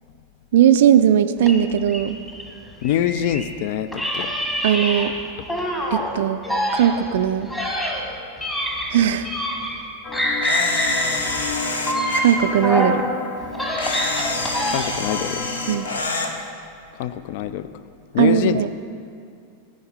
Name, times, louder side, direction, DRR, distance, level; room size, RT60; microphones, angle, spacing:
voice 1, 0.5-2.2 4.6-5.1 5.9-6.4 6.7-7.5 8.9-9.3 12.2-13.0 15.7-15.9 18.2-18.7, right 10 dB, 55° right, 10 dB, 0.3 m, -18 dB
sound 1, 1.4-3.5 3.9-6.1 6.4-9.9 10.1-13.0 13.4-15.1, equal, 10° left, 1.3 m, -26 dB
voice 2, 2.8-4.3 14.7-15.5 16.9-17.7 18.1-18.7, left 10 dB, 50° left, 13 dB, 0.4 m, -24 dB
sound 2, 10.0-16.0, left 4 dB, 30° left, 0.8 m, -33 dB
Camera, 10.4-12.4 13.8-16.3, left 3 dB, 70° left, 0.8 m, -27 dB
13.5 x 5.1 x 5.4 m, 2.3 s
figure-of-eight pair, 90°, 0 cm